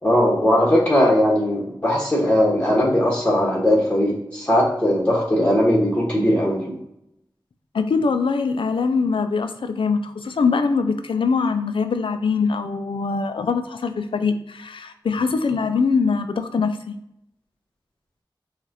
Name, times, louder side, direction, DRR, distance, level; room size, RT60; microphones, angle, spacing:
voice 1, 0.0-6.8, left 1 dB, 15° left, -4 dB, 1.4 m, -19 dB
voice 2, 7.7-16.9, left 4 dB, 90° left, 9 dB, 0.4 m, -22 dB
6.0 x 2.4 x 2.9 m, 0.80 s
cardioid pair, 40°, 9 cm